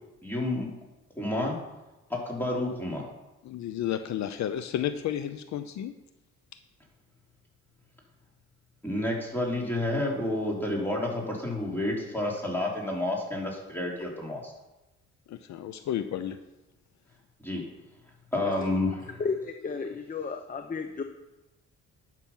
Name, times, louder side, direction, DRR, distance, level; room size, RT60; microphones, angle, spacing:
voice 1, 0.2-0.7 1.1-1.6 2.1-3.0 8.8-14.5 17.4-17.6 18.3-19.0, left 1 dB, 5° left, -2 dB, 3.3 m, -30 dB
voice 2, 3.4-5.9 15.3-16.4, left 10 dB, 65° left, 10 dB, 0.6 m, -32 dB
voice 3, 19.2-21.0, left 5 dB, 30° left, 6 dB, 0.8 m, -33 dB
11.5 x 6.1 x 5.5 m, 1.0 s
cardioid pair, 90°, 30 cm